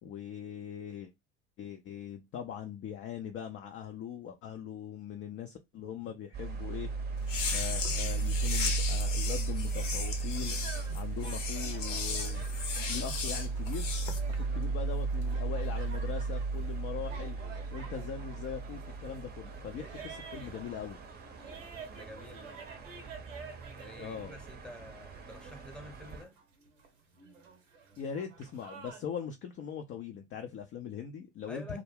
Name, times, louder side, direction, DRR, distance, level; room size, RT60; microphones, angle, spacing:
voice 1, 0.0-1.1 1.6-6.9 7.5-10.6 10.9-12.4 12.9-13.9 14.3-17.4 17.7-21.0 24.0-24.3 28.0-31.8, left 8 dB, 35° left, 0.4 m, -41 dB
sound 1, 6.3-26.2, right 4 dB, 25° right, 0.6 m, -36 dB
sound 2, 7.2-14.2, left 6 dB, 75° left, 0.8 m, -36 dB
sound 3, 9.7-29.1, right 5 dB, 90° right, 0.7 m, -51 dB
voice 2, 21.8-22.6 23.8-26.3 31.5-31.8, left 1 dB, ahead, 0.8 m, -49 dB
2.3 x 2.1 x 3.2 m
hypercardioid pair, 70°, 37 cm